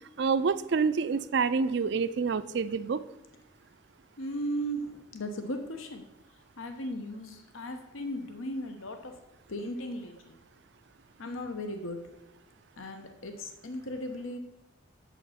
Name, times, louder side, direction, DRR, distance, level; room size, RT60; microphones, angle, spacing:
voice 1, 0.2-3.0, right 5 dB, 55° right, 14 dB, 0.4 m, -27 dB
voice 2, 4.2-6.0 6.6-9.2 9.5-10.4 11.2-12.1 12.8-14.4, equal, 85° left, 6 dB, 0.9 m, -37 dB
7.3 x 5.7 x 5.7 m, 0.99 s
head